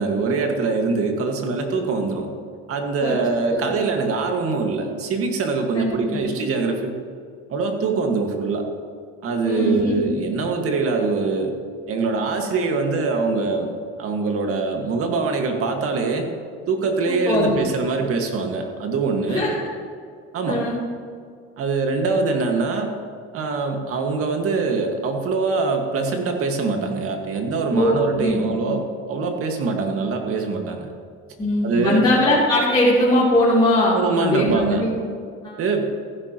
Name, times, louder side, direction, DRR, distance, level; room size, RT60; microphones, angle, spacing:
voice 1, 0.0-2.3 2.7-6.9 7.5-8.7 9.2-11.5 11.9-13.7 14.0-16.3 16.7-19.5 20.3-20.7 21.6-22.9 23.3-30.9 31.6-32.0 33.9-34.9 35.6-35.9, right 4 dB, 50° right, 3 dB, 1.8 m, -23 dB
voice 2, 5.7-6.3 9.4-10.1 17.1-17.6 19.3-19.7 20.5-20.8 27.7-28.7 31.4-34.9 35.4-35.6, left 1 dB, 15° left, -9 dB, 3.1 m, -21 dB
15.0 x 11.0 x 3.0 m, 2.2 s
cardioid pair, 115°, 30 cm